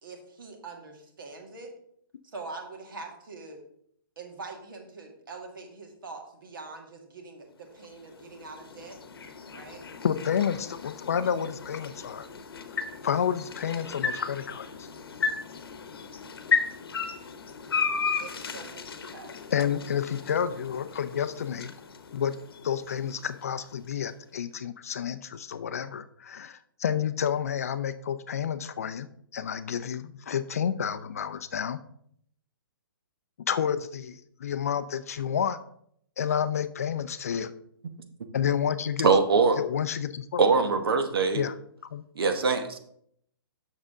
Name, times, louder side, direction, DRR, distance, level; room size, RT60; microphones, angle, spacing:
voice 1, 0.0-1.7 2.2-3.6 4.2-9.0 9.5-9.8 18.2-19.3, right 3 dB, 65° right, 3 dB, 1.9 m, -43 dB
sound 1, 7.7-23.9, left 5 dB, 85° left, 0.9 m, -35 dB
voice 2, 10.0-12.3 12.7-14.9 19.5-21.7 22.1-22.3 22.6-31.8 33.4-35.6 36.2-37.5 38.3-39.1 39.6-40.4 41.3-41.5 41.9-42.0, left 8 dB, 40° left, 12 dB, 0.4 m, -30 dB
voice 3, 39.0-39.6 40.4-41.4 42.2-42.8, right 4 dB, 80° right, 7 dB, 1.1 m, -22 dB
7.3 x 6.4 x 3.7 m, 0.68 s
hypercardioid pair, 175°, 12 cm